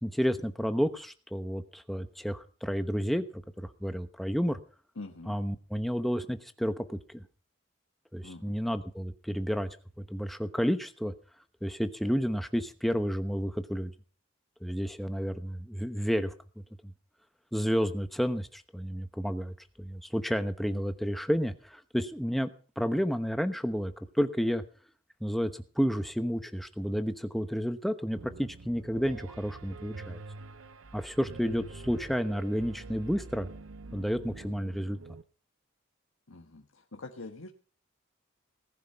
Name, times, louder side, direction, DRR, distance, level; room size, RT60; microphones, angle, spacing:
voice 1, 0.0-4.6 5.3-7.2 8.1-9.7 10.0-11.1 11.6-13.9 14.6-16.3 17.5-22.5 22.8-24.6 25.2-30.2 30.9-33.5 33.9-35.0, equal, ahead, 9 dB, 1.0 m, -31 dB
voice 2, 4.9-5.4 8.2-8.6 36.3-37.5, left 2 dB, 80° left, 4 dB, 1.4 m, -44 dB
Piano, 28.2-35.2, right 3 dB, 70° right, 0.7 m, -46 dB
19.0 x 10.5 x 5.6 m, 0.40 s
head